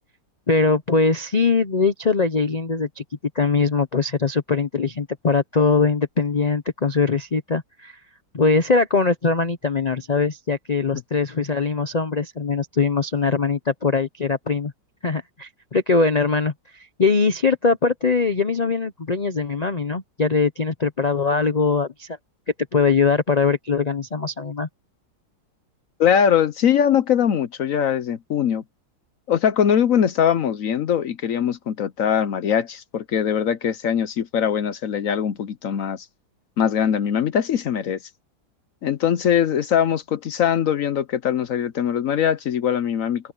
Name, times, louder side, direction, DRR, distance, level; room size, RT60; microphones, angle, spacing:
voice 1, 0.5-3.0 3.3-8.0 8.3-14.7 15.0-22.1 22.7-24.7, left 4 dB, 80° left, 0.3 m, -21 dB
voice 2, 26.0-28.6 29.3-36.1 36.6-38.0 38.8-43.3, left 8 dB, 60° left, 0.9 m, -21 dB
omnidirectional pair, 2.0 m